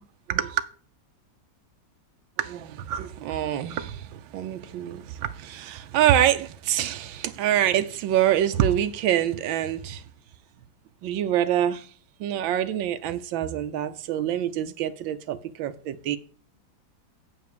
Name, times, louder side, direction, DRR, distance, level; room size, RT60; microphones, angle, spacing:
voice 1, 0.3-0.7 2.4-10.0 11.0-11.9 12.2-16.2, right 11 dB, 85° right, 1.4 m, -25 dB
7.9 x 5.9 x 6.7 m
omnidirectional pair, 2.1 m